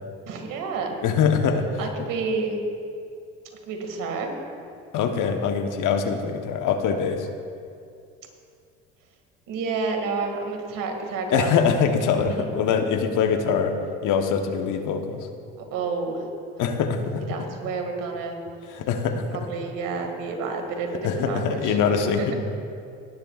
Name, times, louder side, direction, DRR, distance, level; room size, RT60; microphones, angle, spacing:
voice 1, 0.3-1.0 1.8-2.6 3.7-4.3 9.5-11.5 12.2-12.4 15.7-16.2 17.3-18.4 19.5-21.8 22.2-22.3, right 4 dB, 65° right, 3 dB, 2.2 m, -29 dB
voice 2, 1.0-1.7 4.9-7.3 11.3-13.7 14.0-15.3 16.6-17.2 18.7-19.3 21.0-22.3, left 6 dB, 60° left, 6 dB, 1.1 m, -23 dB
18.5 x 10.5 x 2.4 m, 2.4 s
hypercardioid pair, 70°, 35 cm